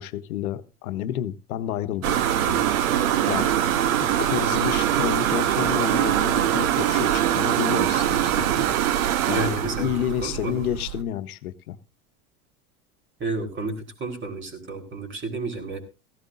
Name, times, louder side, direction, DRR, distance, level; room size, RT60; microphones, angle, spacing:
voice 1, 0.0-2.2 2.5-2.7 3.3-3.5 4.2-8.7 9.3-11.8, left 11 dB, 80° left, 1.0 m, -30 dB
sound 1, 2.0-11.0, right 11 dB, 75° right, 1.2 m, -23 dB
voice 2, 9.3-9.9 10.2-10.7 13.2-15.8, right 3 dB, 25° right, 3.9 m, -31 dB
17.5 x 15.0 x 2.5 m
hypercardioid pair, 95°, 43 cm